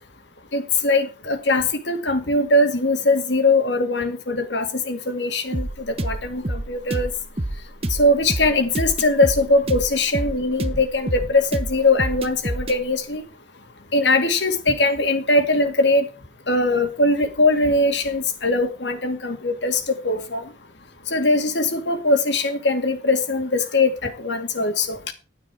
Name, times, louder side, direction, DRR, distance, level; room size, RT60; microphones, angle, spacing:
voice 1, 0.5-7.1 7.9-13.2 13.9-16.1 16.5-20.4 21.1-25.1, left 2 dB, 70° left, 2.2 m, -21 dB
sound 1, 5.5-12.8, right 1 dB, 30° right, 1.0 m, -28 dB
11.5 x 10.0 x 4.8 m
head